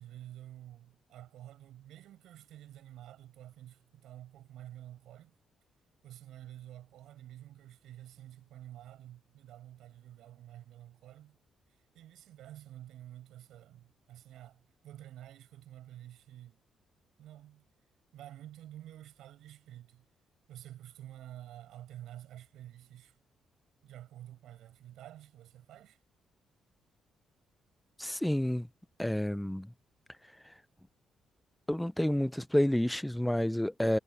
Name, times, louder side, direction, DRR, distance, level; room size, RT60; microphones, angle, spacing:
voice 1, 0.0-5.3 6.0-11.4 11.7-16.6 17.2-17.7 18.1-20.1 20.5-23.2 23.8-26.0, right 13 dB, 85° right, 7.7 m, -50 dB
voice 2, 28.0-28.7 29.0-29.7 30.2-30.6 31.7-34.0, left 1 dB, 5° left, 0.4 m, -30 dB
cardioid pair, 145°, 0 cm